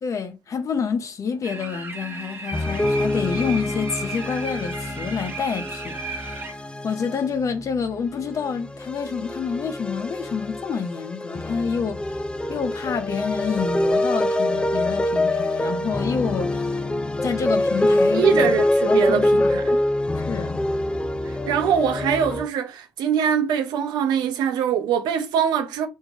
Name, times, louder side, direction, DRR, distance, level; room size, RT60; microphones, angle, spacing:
voice 1, 0.0-6.6 6.8-12.2 12.5-16.8 17.2-18.5 18.9-19.6 20.1-20.6, left 6 dB, 50° left, 0.7 m, -28 dB
sound 1, 1.4-6.5, right 3 dB, 30° right, 1.0 m, -35 dB
sound 2, 2.5-22.5, left 1 dB, 15° left, 0.4 m, -25 dB
voice 2, 18.1-19.8 21.5-25.9, right 8 dB, 75° right, 0.7 m, -23 dB
3.5 x 2.7 x 3.0 m
supercardioid pair, 65°, 7 cm